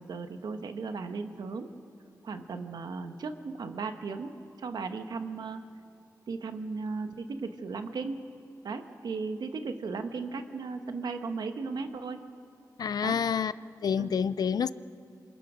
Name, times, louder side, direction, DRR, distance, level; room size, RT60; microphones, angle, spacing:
voice 1, 0.0-1.7 2.2-5.6 6.3-8.2 8.6-12.2 13.0-13.2 13.9-14.1, right 4 dB, 75° right, 1.3 m, -36 dB
voice 2, 12.8-13.5 13.8-14.7, left 7 dB, 65° left, 0.5 m, -28 dB
27.5 x 26.0 x 5.1 m
wide cardioid pair, 145°, 7 cm